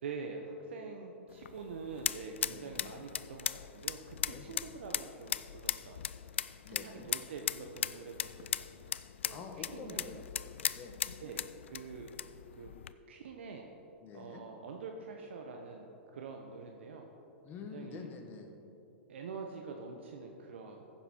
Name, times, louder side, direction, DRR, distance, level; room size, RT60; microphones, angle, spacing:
voice 1, 0.0-3.5 3.7-6.1 6.3-8.9 9.2-9.4 9.7-10.1 11.2-12.1 12.6-12.7 13.1-13.7 14.1-17.1 17.7-18.0 19.1-20.9, right 4 dB, 75° right, 2 dB, 1.0 m, -45 dB
sound 1, 1.3-12.9, left 9 dB, 85° left, 0.3 m, -39 dB
voice 2, 2.4-2.9 4.3-4.6 6.6-7.1 9.3-11.0 14.0-14.4 17.4-18.5, left 4 dB, 30° left, 3 dB, 1.5 m, -47 dB
15.5 x 7.3 x 4.4 m, 3.0 s
hypercardioid pair, 125°, 6 cm